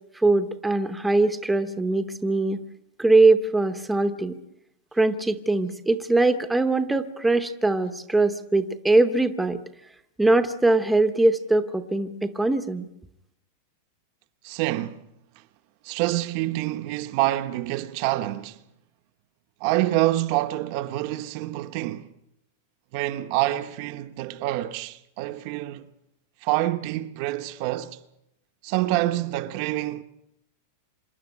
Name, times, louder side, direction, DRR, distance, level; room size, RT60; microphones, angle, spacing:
voice 1, 0.1-2.6 3.0-4.4 4.9-9.6 10.2-12.9, right 2 dB, 5° right, 0.9 m, -21 dB
voice 2, 14.4-15.0 15.8-18.6 19.6-22.1 22.9-25.8 26.4-28.0 28.6-30.0, right 16 dB, 45° right, 0.9 m, -26 dB
26.0 x 11.0 x 9.7 m
supercardioid pair, 160°, 0 cm